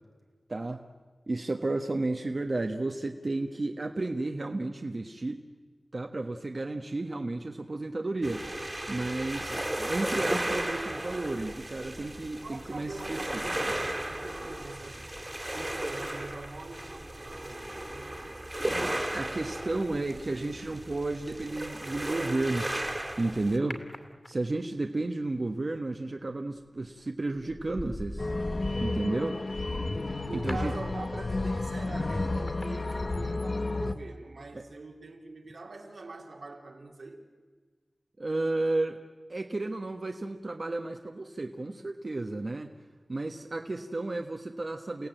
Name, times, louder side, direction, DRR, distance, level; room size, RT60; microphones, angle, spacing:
voice 1, 0.5-0.8 1.3-5.4 5.9-8.4 8.9-13.3 19.1-22.7 23.2-23.8 24.3-28.3 28.8-29.4 30.3-30.7 34.5-34.6 38.2-39.0 39.3-42.7 43.1-45.1, right 2 dB, 50° right, 4 dB, 1.2 m, -32 dB
sound 1, 8.2-23.6, right 1 dB, 20° right, 2.1 m, -35 dB
voice 2, 12.4-15.1 15.4-18.8 30.2-37.2, right 3 dB, 85° right, 1 dB, 3.3 m, -44 dB
sound 2, 23.7-24.7 26.6-26.9 27.4-33.6 33.8-33.9, left 1 dB, 30° left, 2.7 m, -42 dB
sound 3, 28.2-33.9, left 2 dB, 50° left, 1.1 m, -32 dB
29.5 x 17.0 x 9.0 m, 1.5 s
wide cardioid pair, 85°, 0 cm